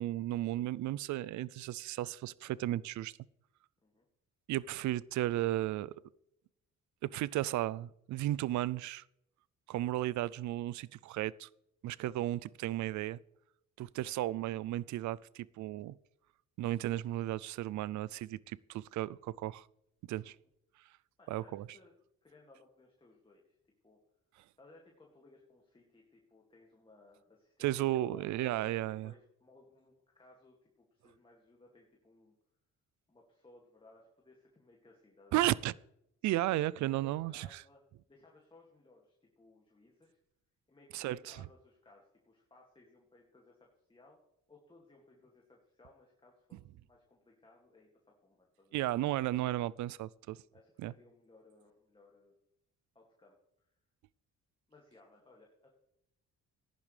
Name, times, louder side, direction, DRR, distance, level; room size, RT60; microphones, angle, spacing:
voice 1, 0.0-3.1 4.5-5.9 7.1-9.0 9.7-11.5 11.8-13.2 13.8-15.9 16.6-19.7 20.1-20.4 21.3-21.8 27.6-29.1 35.3-35.7 36.2-37.6 40.9-41.5 48.7-50.4 50.8-50.9, right 15 dB, 70° right, 0.4 m, -34 dB
voice 2, 21.2-21.9 22.2-23.6 23.8-24.0 24.6-28.4 28.9-32.3 33.1-35.4 36.4-37.8 38.1-40.2 40.7-44.2 44.5-48.8 50.5-52.4 52.9-53.7 54.7-55.7, left 2 dB, 15° left, 2.3 m, -62 dB
15.0 x 10.5 x 3.3 m
cardioid pair, 90°, 30 cm